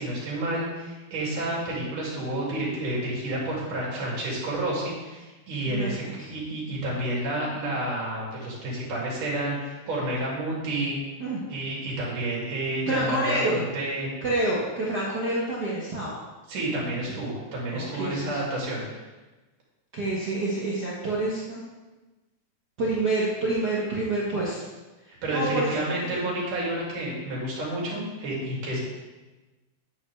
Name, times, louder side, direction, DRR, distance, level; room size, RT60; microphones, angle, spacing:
voice 1, 0.0-11.0 11.5-14.1 16.5-19.0 25.2-28.8, right 1 dB, 55° right, -5 dB, 4.2 m, -30 dB
voice 2, 5.7-6.3 11.2-11.4 12.9-13.6 14.2-16.2 17.7-18.4 19.9-21.6 22.8-24.6 25.1-26.3, right 2 dB, 80° right, -6 dB, 0.9 m, -28 dB
11.0 x 8.6 x 3.5 m, 1.2 s
omnidirectional pair, 4.5 m